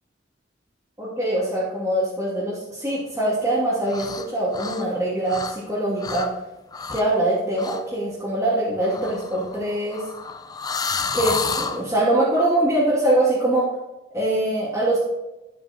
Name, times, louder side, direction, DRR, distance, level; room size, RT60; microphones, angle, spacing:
voice 1, 1.0-6.3 6.9-10.0 11.1-13.7 14.1-15.0, right 1 dB, 15° right, -10 dB, 2.6 m, -23 dB
sound 1, 3.9-4.3 4.5-5.7 6.0-6.3 6.7-7.1 7.6-7.8 8.8-11.8, left 5 dB, 20° left, 0.5 m, -30 dB
12.5 x 8.6 x 3.0 m, 1.0 s
head